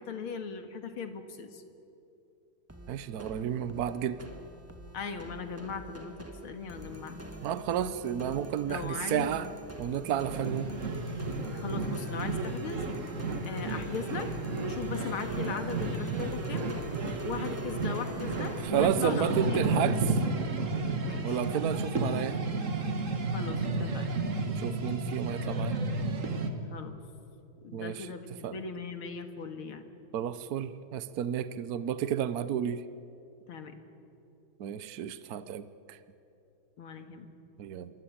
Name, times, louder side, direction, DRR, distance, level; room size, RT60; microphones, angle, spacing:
voice 1, 0.0-1.6 4.9-6.2 6.4-7.2 8.7-9.4 11.5-12.8 13.4-16.7 17.2-20.1 21.0-21.4 23.3-24.2 26.7-27.0 27.6-29.9 33.5-33.7 36.8-37.3, left 5 dB, 80° left, 7 dB, 2.7 m, -38 dB
sound 1, 2.7-18.7, right 1 dB, 10° right, 1.5 m, -44 dB
voice 2, 2.9-4.2 7.4-9.5 9.8-10.7 18.6-20.0 21.2-22.4 24.6-25.8 27.7-28.1 28.4-28.5 30.1-32.8 34.6-36.0 37.6-37.9, right 9 dB, 60° right, 13 dB, 1.0 m, -31 dB
sound 2, 10.3-26.5, right 3 dB, 40° right, 1.9 m, -32 dB
26.5 x 24.0 x 8.7 m, 2.9 s
omnidirectional pair, 2.3 m